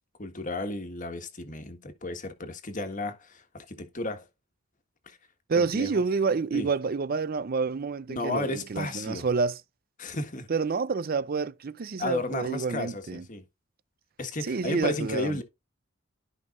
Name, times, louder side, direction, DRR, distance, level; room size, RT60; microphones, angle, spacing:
voice 1, 0.2-4.3 5.0-5.2 5.5-6.0 6.5-6.7 8.1-9.3 10.0-10.5 12.0-13.4 14.2-15.4, left 2 dB, 40° left, 1.5 m, -33 dB
voice 2, 5.5-9.6 10.5-13.2 14.4-15.4, right 4 dB, 45° right, 0.5 m, -28 dB
13.5 x 5.4 x 2.5 m
head